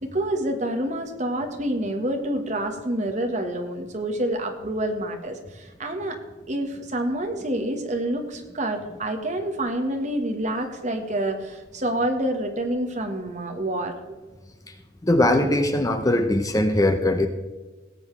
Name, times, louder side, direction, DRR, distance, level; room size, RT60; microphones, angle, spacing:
voice 1, 0.0-6.2 6.5-14.1, right 1 dB, 35° right, 4 dB, 1.5 m, -27 dB
voice 2, 15.0-17.3, left 1 dB, 15° left, 7 dB, 0.6 m, -20 dB
17.5 x 8.1 x 3.3 m, 1.3 s
head